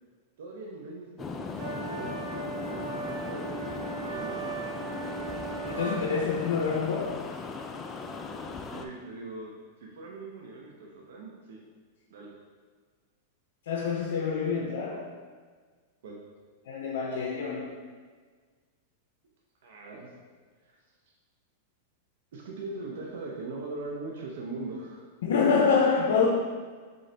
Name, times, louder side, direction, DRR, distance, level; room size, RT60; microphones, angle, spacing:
voice 1, 0.4-4.6 8.7-11.6 12.1-12.3 16.0-16.2 19.6-20.1 20.7-20.8 22.3-25.0, right 3 dB, 75° right, -1 dB, 0.7 m, -41 dB
sound 1, 1.2-8.9, left 4 dB, 20° left, 0.3 m, -38 dB
sound 2, 1.5-6.0, right 5 dB, 45° right, 0.8 m, -37 dB
voice 2, 5.7-7.3 13.7-15.1 16.7-17.8 25.2-26.3, left 5 dB, 80° left, -1 dB, 0.5 m, -26 dB
3.8 x 3.8 x 3.3 m, 1.5 s
supercardioid pair, 135°, 0 cm